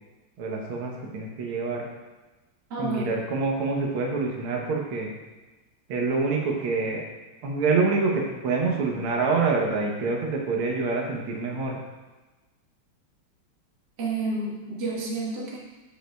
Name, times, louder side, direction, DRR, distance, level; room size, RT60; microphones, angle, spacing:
voice 1, 0.4-1.8 2.8-5.1 5.9-7.0 7.4-11.8, right 4 dB, 90° right, -1 dB, 1.8 m, -26 dB
voice 2, 2.7-3.3 14.0-15.6, right 2 dB, 55° right, -4 dB, 1.9 m, -30 dB
14.0 x 5.2 x 2.3 m, 1.2 s
omnidirectional pair, 2.3 m